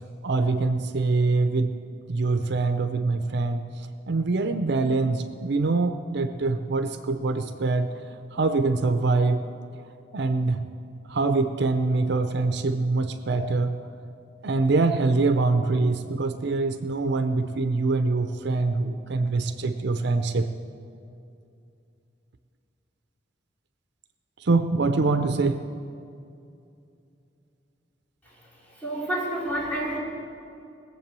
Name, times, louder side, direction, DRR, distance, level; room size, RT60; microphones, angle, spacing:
voice 1, 0.2-1.7 2.1-3.6 4.1-7.9 8.3-9.4 10.1-10.6 11.1-13.8 14.4-20.5 24.4-25.6, right 3 dB, 65° right, 9 dB, 0.6 m, -24 dB
voice 2, 28.8-30.0, right 1 dB, 10° left, -8 dB, 4.5 m, -29 dB
20.0 x 7.5 x 7.4 m, 2.6 s
head